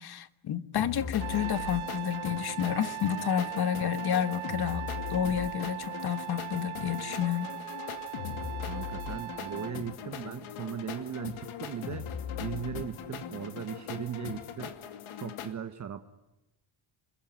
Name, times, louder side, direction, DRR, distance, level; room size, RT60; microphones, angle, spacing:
voice 1, 0.0-7.5, left 9 dB, 50° left, 1.5 m, -30 dB
sound 1, 0.8-15.5, left 8 dB, 80° left, 2.6 m, -39 dB
Trumpet, 1.2-9.8, right 19 dB, 75° right, 1.3 m, -39 dB
voice 2, 8.6-12.1 12.4-14.7 15.2-16.1, right 8 dB, 35° right, 1.2 m, -38 dB
28.0 x 22.0 x 9.6 m
cardioid pair, 160°, 48 cm